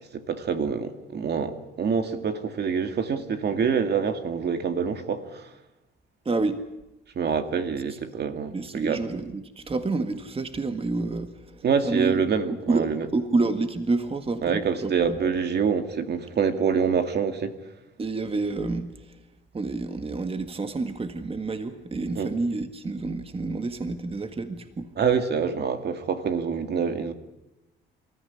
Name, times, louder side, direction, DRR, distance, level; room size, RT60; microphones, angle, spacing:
voice 1, 0.1-5.5 7.2-9.0 11.6-13.1 14.4-17.5 22.2-22.3 25.0-27.1, right 6 dB, 55° right, 2.2 m, -26 dB
voice 2, 6.3-6.6 8.5-12.2 12.5-15.2 18.0-19.2 19.5-24.9, right 3 dB, 30° right, 1.7 m, -29 dB
26.0 x 14.5 x 9.9 m
cardioid pair, 90°, 20 cm